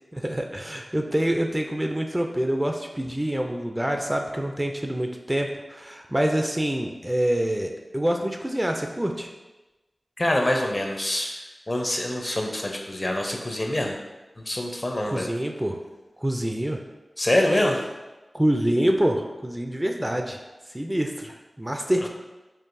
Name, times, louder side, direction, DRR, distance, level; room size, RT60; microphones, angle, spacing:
voice 1, 0.1-9.3 15.1-15.8 16.2-16.8 18.3-20.4 20.7-22.1, right 1 dB, 15° right, 3 dB, 0.3 m, -26 dB
voice 2, 10.2-11.4 11.7-14.0 14.4-15.3 17.2-17.8, left 1 dB, 40° left, 2 dB, 0.6 m, -25 dB
4.5 x 2.8 x 2.5 m, 1.1 s
cardioid pair, 45°, 0 cm